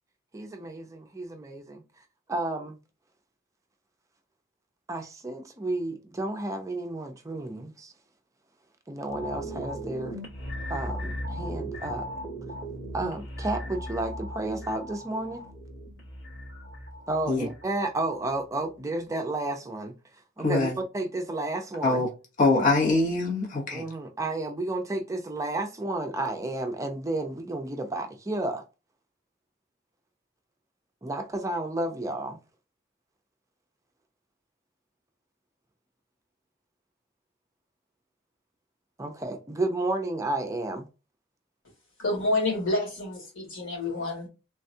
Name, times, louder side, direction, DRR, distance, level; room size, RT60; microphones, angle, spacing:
voice 1, 0.3-1.8 2.3-2.8 4.9-7.9 8.9-10.2 10.7-12.0 12.9-15.4 17.1-19.9 20.4-20.7 20.9-22.0 23.7-28.6 31.0-32.4 39.0-40.9, right 2 dB, 15° right, 0.4 m, -32 dB
sound 1, 9.1-18.4 18.8-18.9, equal, 60° left, 1.3 m, -38 dB
voice 2, 20.4-20.8 21.8-22.1 22.4-23.8, left 3 dB, 40° left, 0.9 m, -23 dB
voice 3, 42.0-44.3, left 2 dB, 80° left, 1.9 m, -28 dB
3.5 x 2.2 x 2.6 m
head